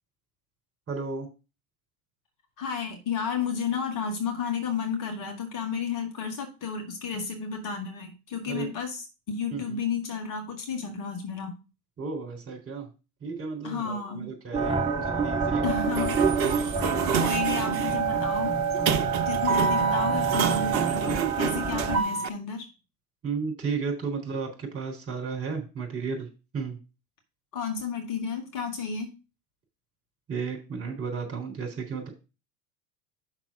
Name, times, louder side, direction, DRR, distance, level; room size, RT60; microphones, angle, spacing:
voice 1, 0.9-1.3 7.1-7.2 8.5-8.7 9.5-9.8 12.0-12.9 13.2-15.8 16.6-17.0 23.2-26.3 26.5-26.8 30.3-32.1, right 5 dB, 30° right, 2 dB, 4.1 m, -33 dB
voice 2, 2.6-11.5 13.6-14.3 15.6-16.2 17.1-18.5 19.2-22.7 27.5-29.2, left 6 dB, 40° left, 3 dB, 2.0 m, -32 dB
sound 1, 14.5-22.0, right 5 dB, 10° right, 1.3 m, -27 dB
Sliding door, 15.8-22.3, right 6 dB, 55° right, 1.0 m, -28 dB
6.0 x 5.8 x 6.0 m, 0.30 s
figure-of-eight pair, 80°, 49 cm